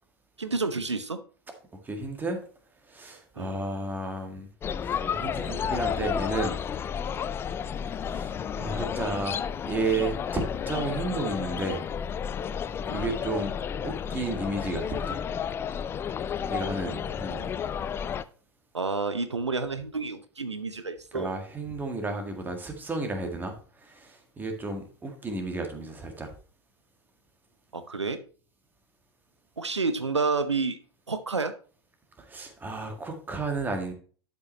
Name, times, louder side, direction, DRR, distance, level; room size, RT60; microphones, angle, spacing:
voice 1, 0.4-1.2 3.4-3.6 12.9-13.1 18.7-21.3 27.7-28.2 29.6-30.8 31.1-31.6, right 4 dB, 80° right, 11 dB, 0.7 m, -29 dB
voice 2, 1.8-2.4 2.9-4.5 4.8-6.6 8.0-9.4 9.7-11.8 12.9-13.5 13.8-15.2 16.5-17.5 21.1-26.3 32.2-33.9, right 2 dB, 15° right, 4 dB, 1.8 m, -32 dB
sound 1, 4.6-18.2, left 7 dB, 15° left, 0.4 m, -32 dB
11.5 x 5.4 x 3.1 m, 0.41 s
figure-of-eight pair, 95°, 14 cm